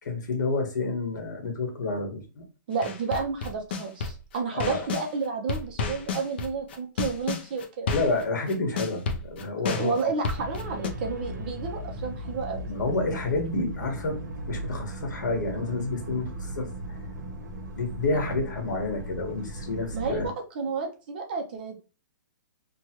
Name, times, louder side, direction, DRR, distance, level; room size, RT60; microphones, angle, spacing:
voice 1, 0.0-2.4 4.5-4.9 7.9-10.0 12.7-14.2 14.5-17.0 17.7-20.3, left 3 dB, 70° left, 3 dB, 1.3 m, -29 dB
voice 2, 2.7-7.9 9.8-12.7 19.9-21.8, right 4 dB, 30° right, 3 dB, 0.5 m, -31 dB
sound 1, 2.8-5.1 5.5-10.9, left 5 dB, 35° left, 0.4 m, -31 dB
sound 2, 10.3-20.3, right 1 dB, 65° right, 0.9 m, -37 dB
3.1 x 2.2 x 2.9 m, 0.33 s
hypercardioid pair, 175°, 10 cm